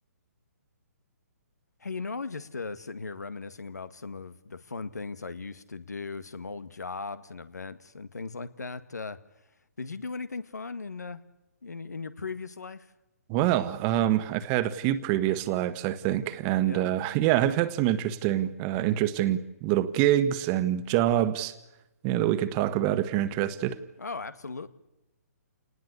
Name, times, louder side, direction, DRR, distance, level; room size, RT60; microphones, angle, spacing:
voice 1, 1.8-9.2 9.8-11.2 11.6-12.9 16.6-17.0 24.0-24.7, left 4 dB, 85° left, 1.9 m, -38 dB
voice 2, 13.3-21.5 22.0-23.8, right 12 dB, 25° right, 1.5 m, -26 dB
28.5 x 19.5 x 8.3 m
hypercardioid pair, 140°, 9 cm